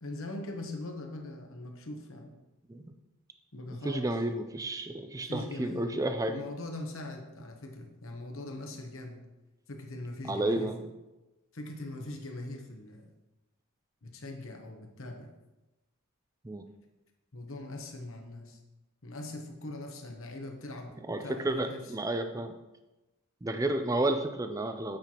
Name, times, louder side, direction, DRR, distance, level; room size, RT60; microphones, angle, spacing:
voice 1, 0.0-2.3 3.5-4.1 5.2-5.9 6.3-9.2 9.7-10.9 11.5-13.1 14.0-15.3 17.3-18.6 19.0-20.9 21.2-21.8, left 2 dB, 65° left, 3 dB, 1.0 m, -41 dB
voice 2, 3.8-6.4 10.2-10.7 16.4-16.7 21.1-22.5 23.4-25.0, right 1 dB, 15° right, 7 dB, 0.4 m, -31 dB
8.7 x 5.8 x 3.0 m, 1.0 s
head